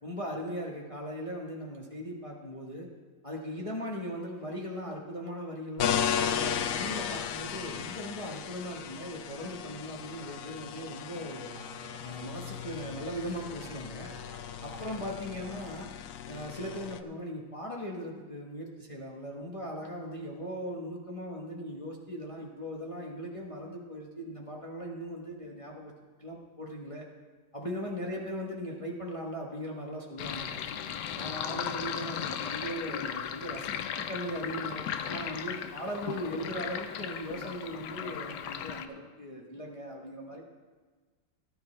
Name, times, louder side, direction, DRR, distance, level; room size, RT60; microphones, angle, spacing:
voice 1, 0.0-2.9 3.2-11.6 12.0-14.1 14.6-15.9 16.3-25.9 26.2-27.1 27.5-30.6 31.1-40.4, equal, 20° left, -2 dB, 1.0 m, -39 dB
sound 1, 5.8-17.0, left 9 dB, 85° left, 0.7 m, -35 dB
sound 2, 10.7-15.9, right 2 dB, 35° right, 0.4 m, -53 dB
voice 2, 14.8-15.2 28.0-28.3 31.1-31.6 35.4-35.9 40.3-40.4, right 4 dB, 85° right, 2 dB, 2.3 m, -59 dB
Sink (filling or washing), 30.2-38.9, left 8 dB, 70° left, 1.1 m, -36 dB
17.5 x 10.5 x 3.3 m, 1.4 s
omnidirectional pair, 2.1 m